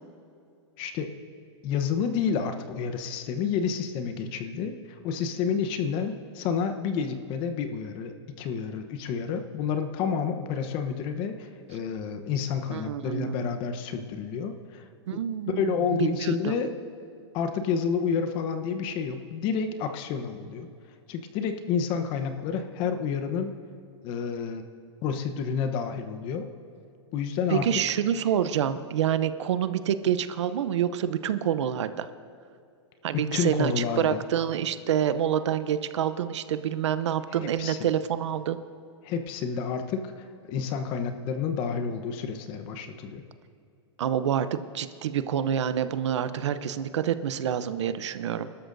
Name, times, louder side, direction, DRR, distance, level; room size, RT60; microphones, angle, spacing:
voice 1, 0.8-1.1 1.6-4.8 5.0-14.8 15.1-15.2 15.6-16.7 17.3-20.7 21.1-23.5 24.0-24.6 25.0-26.5 27.1-27.7 33.1-34.2 37.6-37.8 39.0-43.2, left 6 dB, 35° left, 8 dB, 1.0 m, -29 dB
voice 2, 12.7-13.5 15.1-15.8 16.1-16.3 27.5-32.1 33.0-38.6 44.0-48.5, right 9 dB, 75° right, 12 dB, 0.7 m, -27 dB
27.5 x 12.5 x 2.7 m, 2.5 s
hypercardioid pair, 145°, 15 cm